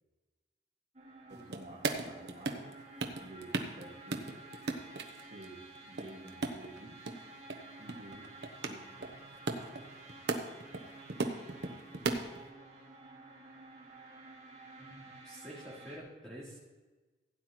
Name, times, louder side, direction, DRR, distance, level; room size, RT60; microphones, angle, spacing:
sound 1, 0.9-16.0, right 2 dB, 40° right, 2.0 m, -52 dB
voice 1, 1.3-2.8 3.2-4.5 5.3-5.6 5.9-7.0 7.8-8.3 8.6-9.1, right 2 dB, 55° right, -3 dB, 2.1 m, -51 dB
sound 2, 1.3-2.7 3.0-3.9 4.1-5.5 5.8-7.2 7.5-7.6 7.9-10.8 11.1-12.4, right 3 dB, 70° right, 1.0 m, -35 dB
voice 2, 14.8-16.6, equal, 5° left, -7 dB, 3.5 m, -48 dB
16.0 x 9.1 x 3.1 m, 1.2 s
head